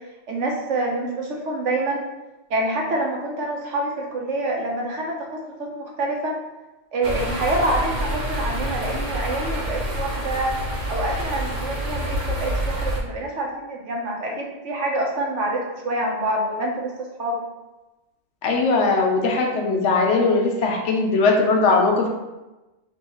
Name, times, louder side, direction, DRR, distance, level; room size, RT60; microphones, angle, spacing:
voice 1, 0.3-2.0 2.5-6.3 6.9-10.5 10.9-17.4, right 1 dB, 70° right, 0 dB, 1.2 m, -26 dB
sound 1, 7.0-13.0, right 1 dB, 40° right, 0.8 m, -27 dB
voice 2, 18.4-22.1, left 3 dB, 70° left, 2 dB, 0.9 m, -19 dB
6.1 x 2.6 x 2.9 m, 1.1 s
omnidirectional pair, 1.3 m